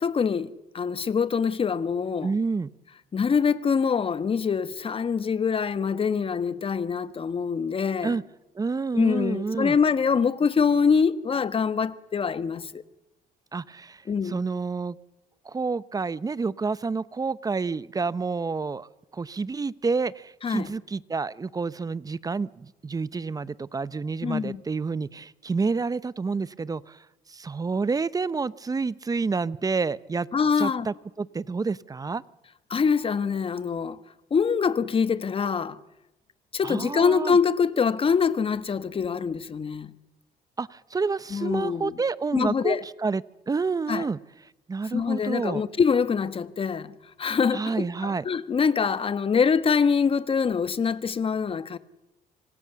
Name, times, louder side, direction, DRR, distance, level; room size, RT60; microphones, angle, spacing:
voice 1, 0.0-2.3 3.1-8.2 8.9-12.8 14.1-14.4 20.4-20.7 24.2-24.6 30.3-30.9 32.7-34.0 34.3-35.8 36.5-39.9 41.3-41.9 42.3-42.8 43.9-44.1 44.9-51.8, left 6 dB, 35° left, 1.4 m, -24 dB
voice 2, 2.2-2.7 8.0-8.2 8.5-9.8 13.5-15.0 15.4-18.9 19.1-27.0 27.3-30.3 30.6-32.2 36.6-37.4 40.6-44.2 44.7-45.6 47.5-48.2, right 4 dB, 20° right, 0.8 m, -29 dB
26.0 x 25.5 x 7.0 m
cardioid pair, 110°, 17 cm